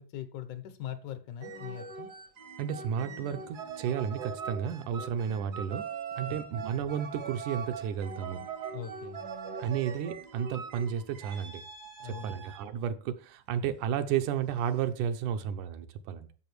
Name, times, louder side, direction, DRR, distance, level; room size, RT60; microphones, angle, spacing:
voice 1, 0.0-2.1 6.3-6.6 8.7-9.2 12.0-12.4, left 10 dB, 75° left, 2.4 m, -41 dB
sound 1, 1.4-12.7 13.9-14.2, right 6 dB, 60° right, 1.0 m, -41 dB
voice 2, 2.6-5.9 6.2-8.4 9.6-11.6 12.0-16.3, right 8 dB, 80° right, 2.3 m, -32 dB
10.5 x 7.2 x 4.5 m
omnidirectional pair, 3.5 m